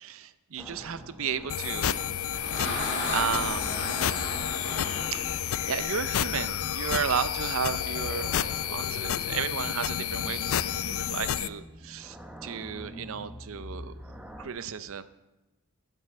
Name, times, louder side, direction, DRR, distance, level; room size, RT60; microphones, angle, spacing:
voice 1, 0.0-2.0 2.6-4.0 5.1-5.4 5.7-12.2 12.4-13.9 14.4-15.0, right 7 dB, 65° right, 13 dB, 0.5 m, -34 dB
sound 1, 0.6-14.5, equal, 5° right, 0.7 m, -45 dB
sound 2, 1.5-11.5, left 10 dB, 65° left, 0.4 m, -30 dB
sound 3, 2.2-6.5, left 1 dB, 50° left, 2.3 m, -35 dB
11.5 x 5.4 x 8.2 m, 1.0 s
head